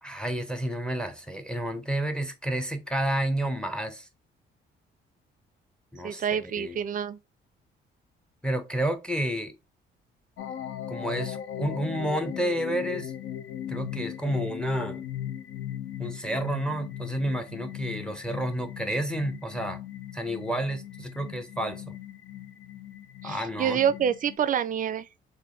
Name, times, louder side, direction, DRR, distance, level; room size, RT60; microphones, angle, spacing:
voice 1, 0.0-4.1 5.9-6.8 8.4-9.5 10.9-13.1 13.7-15.0 16.0-19.8 20.1-22.0 23.2-23.8, right 1 dB, 5° left, 0.6 m, -30 dB
voice 2, 6.0-7.2 23.2-25.1, right 8 dB, 45° right, 0.4 m, -27 dB
sound 1, 10.4-24.4, left 11 dB, 85° left, 0.6 m, -38 dB
3.3 x 2.5 x 3.7 m
cardioid pair, 90°, 20 cm